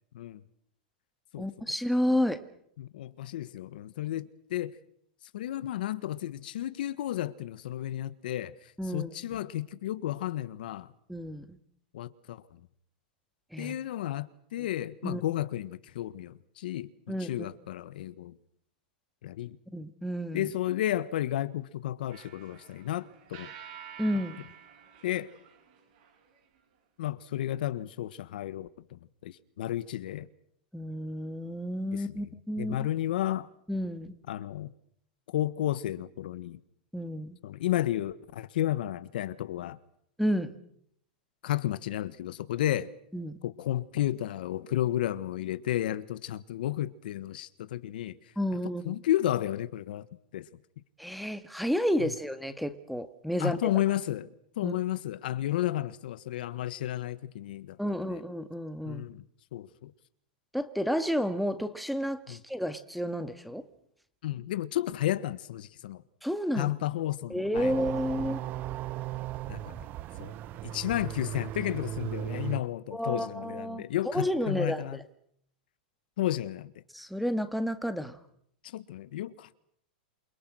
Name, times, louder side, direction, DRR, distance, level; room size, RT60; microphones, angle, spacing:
voice 1, 1.4-2.4 8.8-9.1 11.1-11.6 13.5-13.7 15.0-15.2 17.1-17.5 19.7-20.5 24.0-24.4 30.7-32.9 33.7-34.1 36.9-37.4 40.2-40.5 43.1-43.4 48.4-49.0 51.0-53.7 54.6-54.8 57.8-59.0 60.5-63.6 66.2-66.7 67.3-68.4 72.9-73.8 74.1-75.0 76.9-78.2, equal, ahead, 1.8 m, -31 dB
voice 2, 2.8-4.8 5.3-8.5 8.9-10.9 11.9-12.4 13.6-18.3 19.2-19.6 20.3-23.5 25.0-25.3 27.0-30.3 31.9-32.3 32.6-33.5 34.3-34.7 35.3-36.6 37.4-39.8 41.4-42.9 43.4-48.2 48.8-50.0 50.3-50.5 52.0-52.1 53.4-54.3 54.6-57.8 58.1-58.2 58.8-59.2 59.5-59.9 62.3-62.4 64.2-66.0 66.6-67.9 68.2-68.3 69.5-69.8 70.2-70.4 70.7-75.0 76.2-76.7 78.6-79.5, left 13 dB, 70° left, 1.4 m, -32 dB
sound 1, 22.1-26.4, right 8 dB, 60° right, 7.7 m, -49 dB
sound 2, 67.5-72.6, right 12 dB, 35° right, 1.0 m, -37 dB
28.5 x 23.5 x 6.3 m
hypercardioid pair, 130°, 5 cm